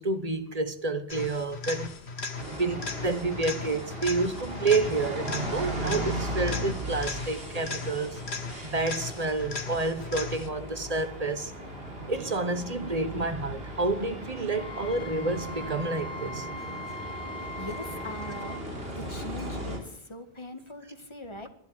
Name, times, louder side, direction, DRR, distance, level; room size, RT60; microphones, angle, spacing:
voice 1, 0.0-2.0 2.5-8.2 8.6-11.5 12.1-16.5, right 3 dB, 40° right, 1.3 m, -29 dB
sound 1, 1.1-10.7 18.7-18.8, left 4 dB, 80° left, 1.9 m, -38 dB
sound 2, 2.4-19.8, right 1 dB, 70° right, 3.7 m, -37 dB
Wind instrument woodwind instrument, 14.5-18.6, left 1 dB, 45° left, 1.8 m, -41 dB
voice 2, 17.3-18.6 18.9-21.5, left 1 dB, 25° left, 1.8 m, -41 dB
12.5 x 11.0 x 8.8 m
omnidirectional pair, 1.1 m